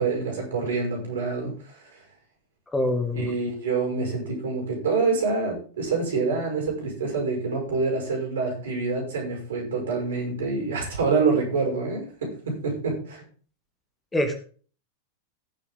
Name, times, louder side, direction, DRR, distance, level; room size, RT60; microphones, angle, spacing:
voice 1, 0.0-2.0 3.1-13.2, right 4 dB, 65° right, 2 dB, 5.9 m, -26 dB
voice 2, 2.7-3.3 14.1-14.4, left 1 dB, 10° left, 6 dB, 1.7 m, -25 dB
17.5 x 6.9 x 3.8 m, 0.41 s
figure-of-eight pair, 90°, 0 cm